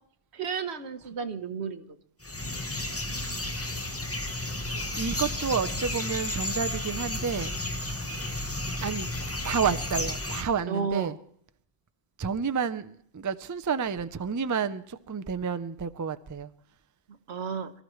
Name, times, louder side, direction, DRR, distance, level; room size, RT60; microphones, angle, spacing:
voice 1, 0.3-1.9 10.7-11.1 17.3-17.7, right 6 dB, 85° right, 9 dB, 1.3 m, -32 dB
sound 1, 2.2-10.4, left 1 dB, 15° left, 0.8 m, -32 dB
voice 2, 5.0-7.6 8.8-9.1 9.4-11.2 12.2-16.5, right 6 dB, 30° right, 12 dB, 0.3 m, -30 dB
23.5 x 13.5 x 3.1 m, 0.64 s
omnidirectional pair, 1.1 m